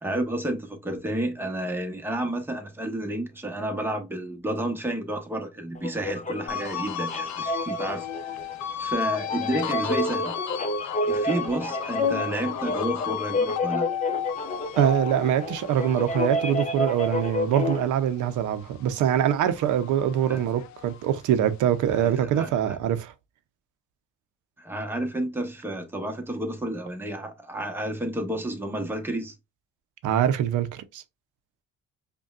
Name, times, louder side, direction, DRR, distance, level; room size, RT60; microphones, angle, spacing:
voice 1, 0.0-8.1 8.8-10.3 11.1-13.9 20.3-20.4 21.9-22.8 24.6-29.4, right 1 dB, 5° right, 0.9 m, -31 dB
sound 1, 5.8-17.9, left 1 dB, 25° left, 0.7 m, -30 dB
sound 2, 6.5-19.1 19.5-21.2, left 9 dB, 70° left, 0.5 m, -34 dB
voice 2, 14.8-23.1 30.0-31.0, right 10 dB, 85° right, 0.6 m, -24 dB
5.1 x 2.3 x 2.4 m
cardioid pair, 90°, 30 cm